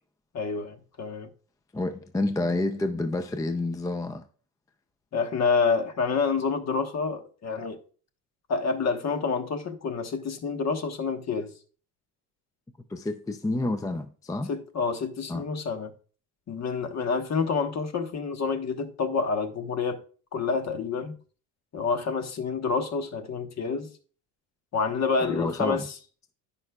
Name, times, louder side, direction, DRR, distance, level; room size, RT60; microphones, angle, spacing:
voice 1, 0.3-1.3 5.1-7.8 8.5-11.5 14.5-15.9 16.5-20.0 20.3-21.2 21.7-23.9 24.7-25.9, left 5 dB, 45° left, 1.2 m, -28 dB
voice 2, 1.7-4.2 12.9-14.5 15.3-15.5 25.2-25.9, left 2 dB, 10° left, 0.4 m, -29 dB
14.5 x 5.4 x 2.3 m
cardioid pair, 135°, 39 cm